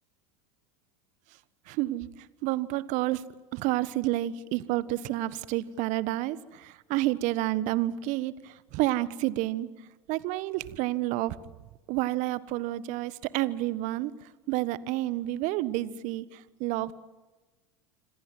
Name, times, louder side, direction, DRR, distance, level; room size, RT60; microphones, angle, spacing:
voice 1, 1.7-3.2 3.5-9.7 10.1-11.4 11.9-16.9, right 16 dB, 55° right, 17 dB, 1.4 m, -30 dB
27.0 x 26.5 x 7.8 m, 1.2 s
hypercardioid pair, 80°, 15 cm